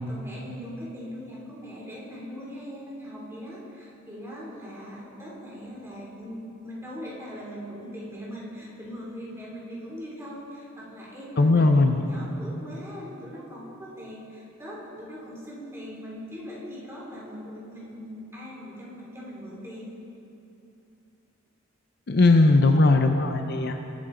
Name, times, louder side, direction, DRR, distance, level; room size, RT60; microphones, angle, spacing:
voice 1, 0.0-19.9, equal, 15° right, -6 dB, 2.9 m, -40 dB
voice 2, 11.4-12.0 22.1-23.8, left 2 dB, 50° left, 6 dB, 0.6 m, -19 dB
21.0 x 9.0 x 3.8 m, 2.8 s
head